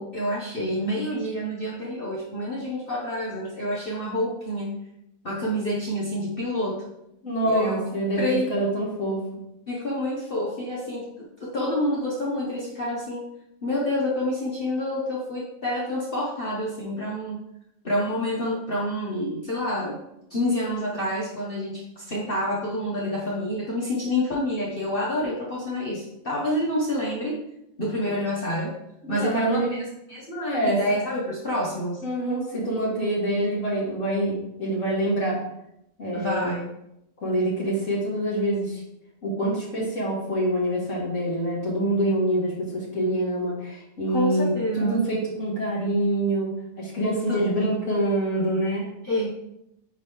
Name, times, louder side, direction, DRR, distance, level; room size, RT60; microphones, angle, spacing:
voice 1, 0.0-4.8 5.2-6.9 7.4-7.8 8.2-8.5 9.7-13.2 13.6-17.4 17.8-20.0 20.3-27.4 27.8-28.7 29.1-32.0 36.1-36.7 44.1-45.0 47.3-47.4 49.0-49.3, left 1 dB, 45° left, -5 dB, 1.0 m, -28 dB
voice 2, 7.2-8.2 8.5-9.2 29.0-29.8 30.5-30.8 32.0-35.4 36.0-36.5 37.2-38.8 39.2-46.5 46.8-48.9, right 1 dB, 60° left, -5 dB, 2.2 m, -25 dB
8.9 x 3.0 x 3.4 m, 0.82 s
omnidirectional pair, 1.5 m